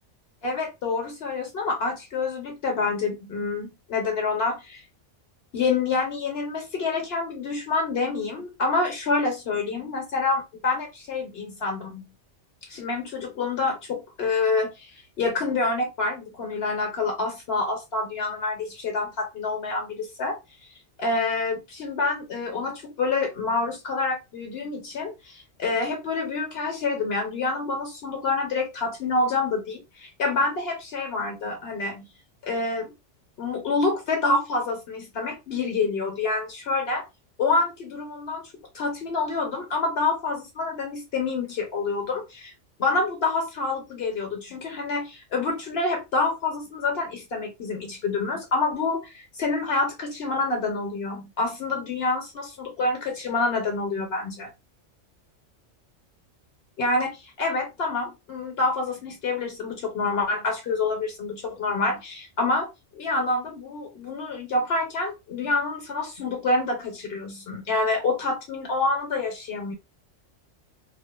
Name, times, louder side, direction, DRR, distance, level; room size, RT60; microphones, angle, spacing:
voice 1, 0.4-4.8 5.5-12.0 12.6-20.4 21.0-32.1 32.4-32.9 33.4-37.0 37.4-38.4 38.7-42.5 42.8-54.5 56.8-69.7, left 3 dB, 60° left, 0.9 m, -27 dB
2.5 x 2.4 x 2.2 m
omnidirectional pair, 1.2 m